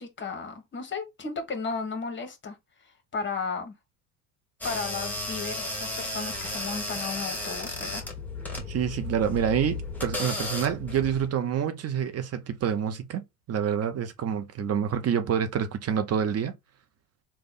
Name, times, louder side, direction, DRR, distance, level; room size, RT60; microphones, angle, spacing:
voice 1, 0.0-2.6 3.1-3.7 4.6-8.0, left 4 dB, 25° left, 1.4 m, -34 dB
sound 1, 4.6-11.3, left 2 dB, 5° left, 1.4 m, -34 dB
voice 2, 8.7-13.2 13.5-16.5, right 8 dB, 35° right, 0.7 m, -27 dB
3.5 x 2.3 x 3.7 m
hypercardioid pair, 75°, 41 cm